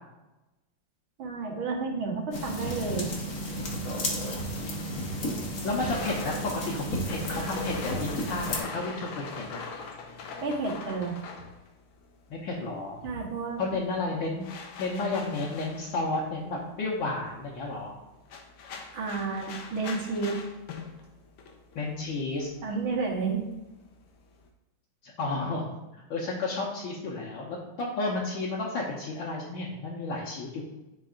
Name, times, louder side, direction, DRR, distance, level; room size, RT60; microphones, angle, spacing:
voice 1, 1.2-3.1 10.4-11.2 13.0-13.6 18.9-20.4 22.6-23.5, right 4 dB, 75° right, 0 dB, 2.1 m, -31 dB
sound 1, 2.3-8.6, equal, 50° left, 1.3 m, -33 dB
voice 2, 5.6-9.6 12.3-13.0 13.6-14.5 14.8-17.9 21.8-22.5 25.0-25.7 26.1-30.6, left 3 dB, 70° left, -4 dB, 1.7 m, -32 dB
sound 2, 5.9-12.6 12.9-24.5, left 4 dB, 85° left, 1.8 m, -42 dB
10.5 x 5.4 x 2.5 m, 1.0 s
omnidirectional pair, 2.3 m